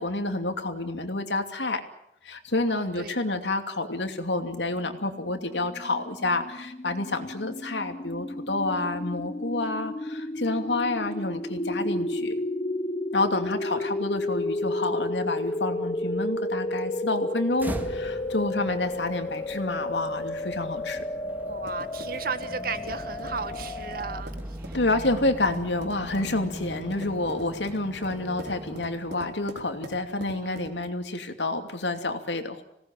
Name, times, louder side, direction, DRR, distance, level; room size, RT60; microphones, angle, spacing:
voice 1, 0.0-1.8 2.2-12.3 13.1-21.0 24.7-32.6, left 2 dB, 90° left, 6 dB, 2.8 m, -29 dB
voice 2, 2.7-3.3 13.6-13.9 21.5-24.8 25.2-25.3, right 5 dB, 60° right, 11 dB, 1.8 m, -36 dB
sound 1, 5.1-24.2, left 1 dB, 30° left, 1.0 m, -32 dB
sound 2, 17.6-29.6, equal, 10° right, 2.0 m, -41 dB
sound 3, 21.2-30.9, right 1 dB, 75° right, 3.0 m, -45 dB
26.0 x 18.5 x 9.1 m, 0.78 s
head